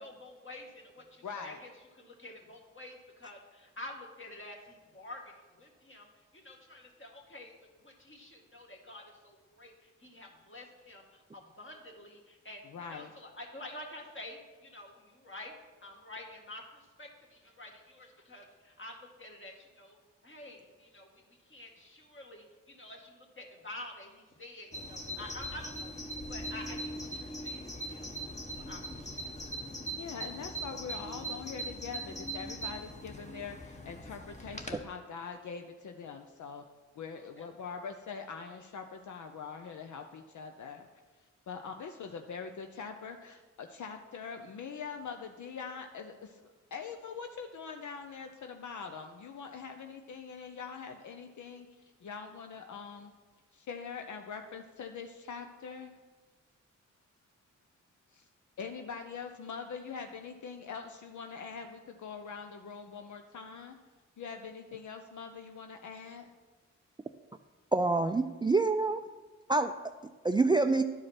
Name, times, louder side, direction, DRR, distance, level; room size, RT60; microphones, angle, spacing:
voice 1, 0.0-1.7 2.0-7.5 7.8-15.5 15.8-20.0 20.2-26.0 26.3-29.3 37.1-37.5, left 1 dB, 40° left, 0 dB, 2.1 m, -48 dB
voice 2, 1.2-1.6 12.7-13.1 30.0-36.6 36.9-40.9 41.5-46.4 46.7-51.7 52.0-53.1 53.5-55.9 58.1-58.3 58.6-63.8 64.2-66.3, left 6 dB, 65° left, 5 dB, 0.6 m, -43 dB
Bird vocalization bird call bird song, 24.7-34.8, right 1 dB, 20° left, 1.2 m, -41 dB
voice 3, 67.7-69.0 69.5-69.7 70.2-70.8, right 3 dB, 15° right, 8 dB, 0.3 m, -26 dB
11.5 x 4.8 x 4.4 m, 1.4 s
cardioid pair, 45°, 32 cm